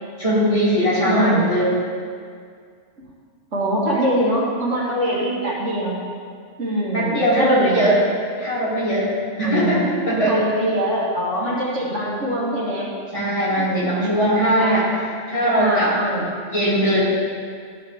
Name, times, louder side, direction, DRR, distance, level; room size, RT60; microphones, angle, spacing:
voice 1, 0.2-1.8 6.9-8.0 8.4-9.1 9.4-10.4 13.1-14.9 15.3-15.9 16.5-17.1, equal, 25° left, -9 dB, 2.1 m, -19 dB
voice 2, 1.0-1.5 3.5-6.0 6.6-7.9 9.4-9.8 10.3-12.9 13.6-14.9 15.6-16.3, right 1 dB, 70° right, -5 dB, 1.9 m, -23 dB
12.0 x 4.8 x 3.4 m, 2.1 s
omnidirectional pair, 1.3 m